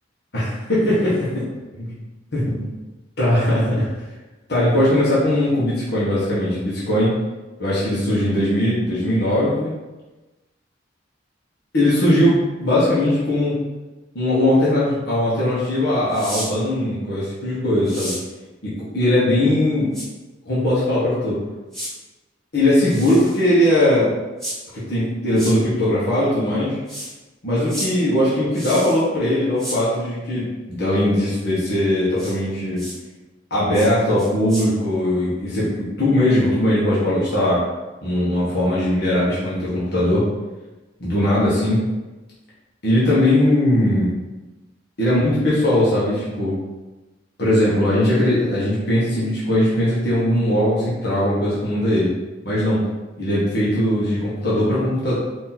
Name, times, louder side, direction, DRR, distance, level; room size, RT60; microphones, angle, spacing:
voice 1, 0.3-1.5 1.7-2.0 2.3-2.7 3.2-3.9 4.5-7.1 7.6-9.7 11.7-13.6 14.1-18.1 18.6-19.9 20.4-21.4 22.5-24.1 24.7-26.8 27.4-32.9 33.5-37.6 38.0-40.3 41.0-41.8 42.8-44.1 45.0-46.5 47.4-52.1 52.4-52.8 53.2-55.1, left 1 dB, 60° left, -9 dB, 1.3 m, -19 dB
sound 1, 16.1-16.5 17.8-18.2 19.9-20.1 21.7-21.9 22.8-23.4 24.4-24.6 25.3-25.5 26.9-27.1 27.7-27.9 28.5-29.0 29.6-29.8 32.2-32.3 32.8-33.0 33.7-33.9 34.2-34.7, equal, ahead, 1.4 m, -31 dB
4.4 x 3.0 x 4.0 m, 1.1 s
head